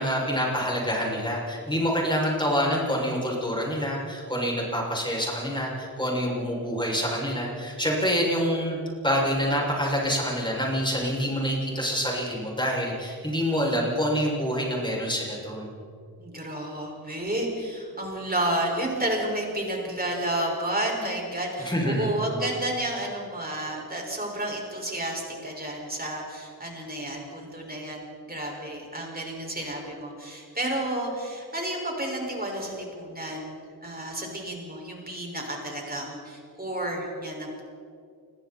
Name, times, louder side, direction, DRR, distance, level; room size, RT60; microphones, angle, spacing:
voice 1, 0.0-8.8 9.0-15.7 21.6-22.1, equal, 10° left, -3 dB, 7.0 m, -26 dB
voice 2, 16.2-28.0 28.3-33.6 33.8-37.6, right 1 dB, 25° right, -1 dB, 5.9 m, -31 dB
29.0 x 22.5 x 4.5 m, 2.4 s
wide cardioid pair, 100°, 38 cm